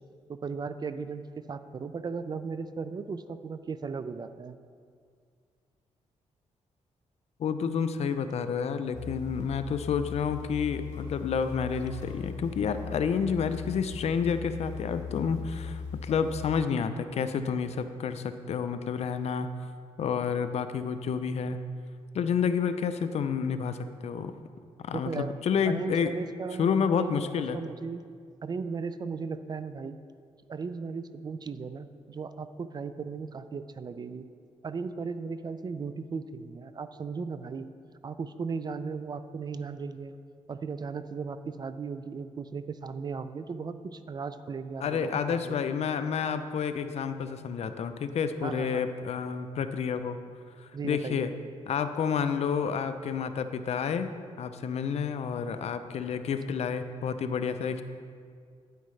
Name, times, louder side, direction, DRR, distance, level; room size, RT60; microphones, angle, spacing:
voice 1, 0.3-4.6 24.9-25.4 25.6-28.0 28.4-30.0 30.5-34.3 34.6-37.7 38.0-40.1 40.5-45.6 48.4-48.8 50.7-51.3, right 5 dB, 35° right, 11 dB, 0.4 m, -36 dB
voice 2, 7.4-19.5 20.0-21.6 22.1-23.8 24.0-24.3 24.8-26.1 26.6-27.6 44.8-50.2 50.6-51.3 51.7-54.1 54.4-57.8, left 6 dB, 60° left, 10 dB, 0.5 m, -29 dB
sound 1, 8.9-16.7, left 5 dB, 75° left, 1.4 m, -39 dB
9.1 x 9.1 x 3.2 m, 2.2 s
cardioid pair, 110°, 12 cm